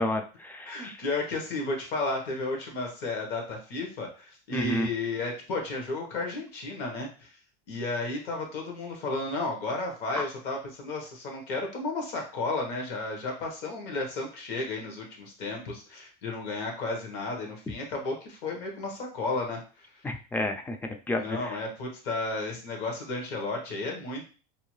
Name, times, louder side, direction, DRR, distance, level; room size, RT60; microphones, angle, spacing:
voice 1, 0.0-1.0 4.5-4.9 20.0-20.8 21.1-21.6, left 1 dB, 10° left, 5 dB, 0.3 m, -30 dB
voice 2, 0.7-7.3 7.7-19.9 21.2-24.3, left 2 dB, 55° left, 2 dB, 1.1 m, -33 dB
2.7 x 2.2 x 3.1 m, 0.36 s
supercardioid pair, 125°, 19 cm